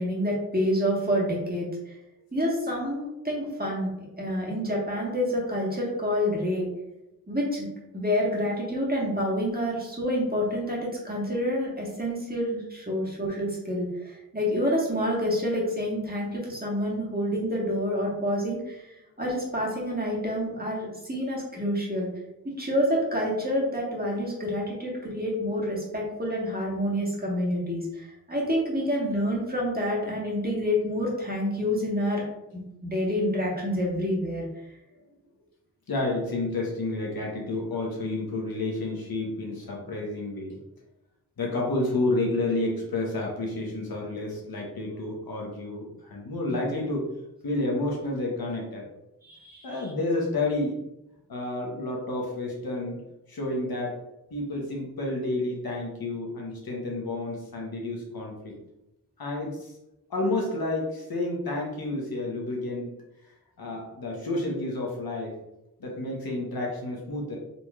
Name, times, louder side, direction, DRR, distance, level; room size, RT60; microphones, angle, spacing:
voice 1, 0.0-1.9 2.3-3.9 4.2-6.7 7.3-7.7 7.9-18.9 19.2-22.1 22.6-32.2 32.5-34.5 49.2-49.7, equal, 25° right, -3 dB, 1.4 m, -28 dB
voice 2, 35.9-40.6 41.4-47.1 47.4-48.9 49.6-50.8 51.3-53.0 53.3-54.0 54.3-58.5 59.2-59.7 60.1-62.9 63.6-65.3 65.8-67.4, left 2 dB, 75° left, -1 dB, 1.0 m, -30 dB
3.9 x 3.0 x 2.3 m, 0.91 s
cardioid pair, 40°, 36 cm